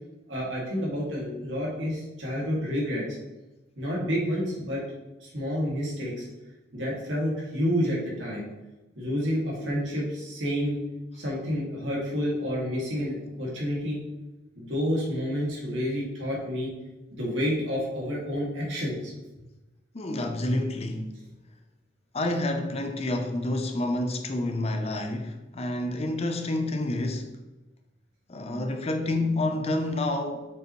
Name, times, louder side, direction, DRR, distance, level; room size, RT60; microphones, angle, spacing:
voice 1, 0.3-3.2 3.8-4.8 5.2-6.3 6.7-8.5 9.0-10.8 11.1-14.0 14.6-16.7 17.1-19.1, equal, 65° right, 2.1 m, -29 dB
voice 2, 19.9-21.1 22.1-27.4 28.3-30.5, left 1 dB, 30° left, 0.6 m, -28 dB
6.7 x 5.3 x 3.0 m
head